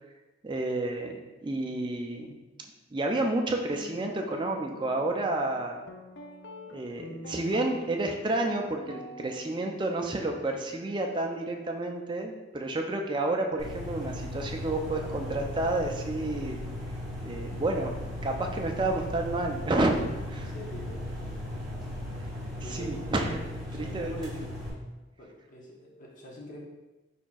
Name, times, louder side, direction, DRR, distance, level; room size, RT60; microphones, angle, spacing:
voice 1, 0.4-2.4 2.9-5.8 6.7-16.6 17.2-17.9 18.2-19.9 20.3-20.4 22.7-23.3 23.8-24.3, right 2 dB, 25° right, 2 dB, 0.4 m, -30 dB
Guitar, 3.7-11.9, left 1 dB, 60° left, 0.4 m, -46 dB
sound 1, 13.6-24.7, left 1 dB, ahead, 1.0 m, -37 dB
voice 2, 20.3-21.2 22.6-23.0 23.7-24.3 25.2-26.6, left 1 dB, 40° left, -3 dB, 0.9 m, -45 dB
4.8 x 4.2 x 2.3 m, 1.1 s
head